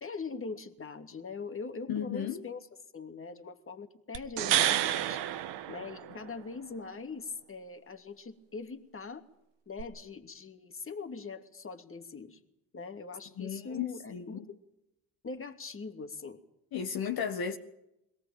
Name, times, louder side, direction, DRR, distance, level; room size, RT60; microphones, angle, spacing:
voice 1, 0.0-2.7 2.9-5.2 5.7-9.2 9.7-12.4 12.7-14.6 15.2-16.4, left 4 dB, 30° left, 2.8 m, -42 dB
voice 2, 1.9-2.4 13.4-14.5 16.7-17.6, left 7 dB, 55° left, 1.8 m, -34 dB
sound 1, 4.1-6.4 9.8-9.9, right 12 dB, 70° right, 1.6 m, -30 dB
22.5 x 18.0 x 9.2 m
hypercardioid pair, 65°, 44 cm